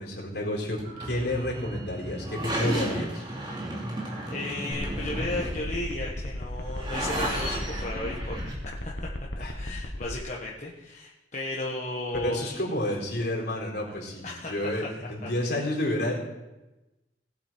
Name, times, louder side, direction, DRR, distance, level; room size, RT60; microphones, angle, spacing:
voice 1, 0.0-3.2 9.4-9.5 12.2-16.1, left 1 dB, 65° left, -3 dB, 4.3 m, -30 dB
sound 1, 0.8-8.5, right 1 dB, 25° right, 2.9 m, -34 dB
voice 2, 4.3-8.4 8.8-12.6 14.2-15.3, left 2 dB, 40° left, -4 dB, 1.5 m, -35 dB
sound 2, 4.8-10.2, left 1 dB, 80° left, 1.5 m, -35 dB
19.0 x 8.3 x 4.6 m, 1.0 s
head